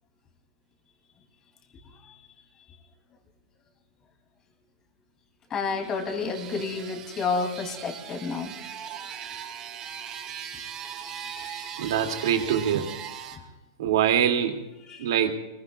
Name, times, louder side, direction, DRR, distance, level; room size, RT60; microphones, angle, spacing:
voice 1, 5.5-8.5 11.1-11.7 14.9-15.1, left 4 dB, 25° left, 4 dB, 2.8 m, -31 dB
sound 1, 5.6-13.4, right 8 dB, 25° right, 2.1 m, -39 dB
voice 2, 11.8-13.0 13.8-14.7 15.0-15.4, right 9 dB, 65° right, 4 dB, 2.5 m, -24 dB
26.5 x 21.5 x 2.4 m, 1.0 s
hypercardioid pair, 145°, 2 cm